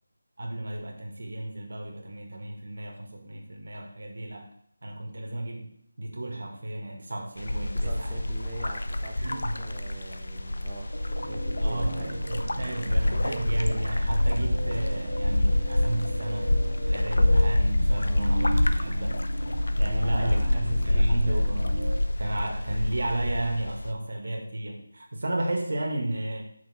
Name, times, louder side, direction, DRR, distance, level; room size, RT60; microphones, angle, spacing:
voice 1, 0.4-4.5 4.8-8.2 9.2-9.8 11.6-19.2 19.8-21.7 22.2-26.4, right 1 dB, 50° right, 2 dB, 1.9 m, -33 dB
sound 1, 7.4-23.9, left 1 dB, 65° left, 0.8 m, -26 dB
voice 2, 7.7-9.2 9.6-12.2 18.0-18.3 19.9-21.5, right 2 dB, 5° right, -7 dB, 0.6 m, -43 dB
sound 2, 10.9-22.0, right 2 dB, 30° right, 1.8 m, -39 dB
8.4 x 6.0 x 4.3 m, 0.66 s
figure-of-eight pair, 180°, 0 cm